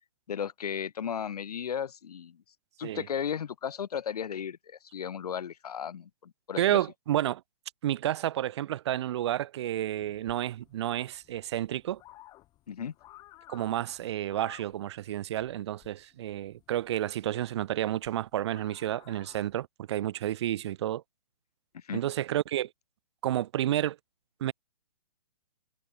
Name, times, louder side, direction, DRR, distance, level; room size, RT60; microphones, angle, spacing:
voice 1, 0.3-2.4 2.8-6.8 12.7-12.9 21.7-22.0, left 8 dB, 70° left, 1.8 m, -35 dB
voice 2, 6.6-7.4 7.8-12.0 13.5-21.0 21.9-22.7 23.2-24.0 24.4-24.5, right 12 dB, 40° right, 1.4 m, -30 dB
sound 1, 10.0-19.6, left 16 dB, 20° left, 3.2 m, -56 dB
hypercardioid pair, 160°, 21 cm